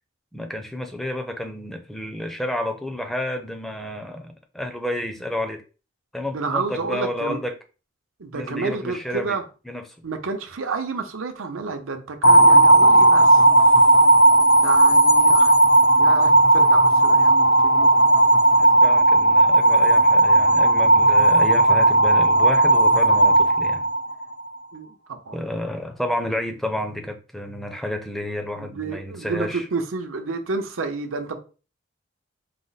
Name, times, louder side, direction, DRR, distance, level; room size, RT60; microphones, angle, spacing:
voice 1, 0.3-5.6 6.1-7.5 8.3-9.4 9.7-9.9 18.6-23.9 25.3-29.7, left 1 dB, ahead, 0.5 m, -30 dB
voice 2, 6.3-7.4 8.2-9.4 10.0-14.0 14.6-15.5 16.0-17.9 24.7-25.4 28.6-31.4, right 4 dB, 85° right, 0.7 m, -30 dB
sound 1, 12.2-24.4, right 2 dB, 55° left, 0.5 m, -15 dB
4.9 x 2.1 x 4.0 m
head